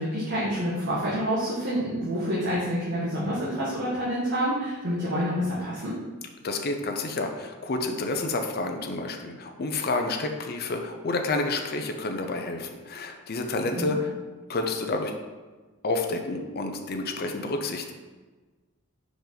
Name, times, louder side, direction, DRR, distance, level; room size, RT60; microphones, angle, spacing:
voice 1, 0.0-5.9 13.7-13.9, equal, 55° right, -9 dB, 1.4 m, -28 dB
voice 2, 6.4-14.1 14.5-15.1 15.8-17.9, left 2 dB, 45° left, 4 dB, 0.6 m, -29 dB
5.1 x 5.0 x 3.9 m, 1.3 s
head